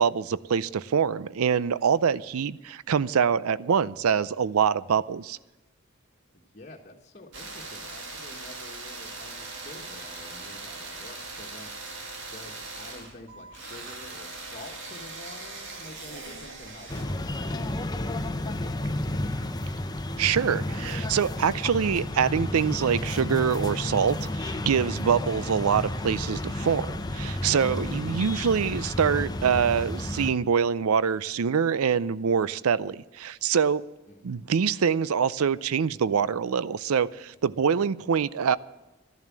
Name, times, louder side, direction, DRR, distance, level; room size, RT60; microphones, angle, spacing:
voice 1, 0.0-5.4 20.2-33.8 34.2-38.6, right 7 dB, 85° right, 18 dB, 0.5 m, -25 dB
voice 2, 6.3-11.7 12.3-19.5 34.1-34.4, left 2 dB, 35° left, -1 dB, 1.4 m, -47 dB
sound 1, 7.3-17.0, right 3 dB, 60° right, 2.5 m, -40 dB
sound 2, 16.9-30.3, left 1 dB, 20° left, 0.8 m, -31 dB
12.5 x 11.0 x 7.3 m, 1.1 s
head